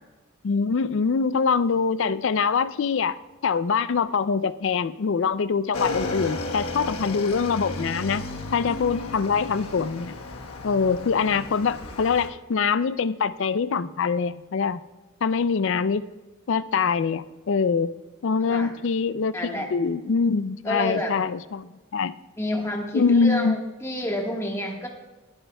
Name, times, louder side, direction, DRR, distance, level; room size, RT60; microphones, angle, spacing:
voice 1, 0.4-3.2 3.4-8.2 8.5-10.2 10.6-14.8 15.2-16.0 16.5-17.9 18.2-22.1 22.9-23.6, left 5 dB, 55° left, 15 dB, 0.4 m, -24 dB
Motorcycle / Engine, 5.7-12.3, left 2 dB, 80° left, 1.2 m, -33 dB
voice 2, 19.3-19.7 20.6-21.1 22.4-24.9, left 1 dB, 10° left, 1 dB, 1.4 m, -29 dB
20.0 x 8.8 x 2.3 m, 1.2 s
head